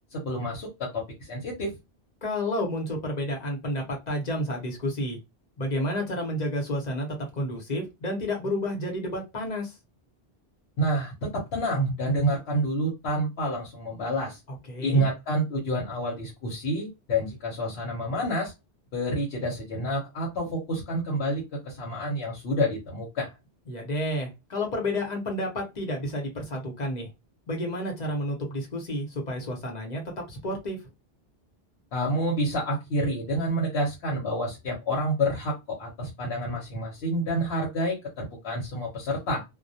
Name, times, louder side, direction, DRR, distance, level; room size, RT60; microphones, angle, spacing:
voice 1, 0.1-1.7 10.8-14.4 14.8-18.5 18.9-23.3 31.9-39.4, equal, 80° left, -3 dB, 1.0 m, -28 dB
voice 2, 2.2-5.2 5.6-9.8 14.7-15.1 23.7-27.1 27.5-30.9, left 1 dB, 45° left, 1 dB, 0.9 m, -30 dB
2.2 x 2.1 x 2.7 m, 0.23 s
omnidirectional pair, 1.1 m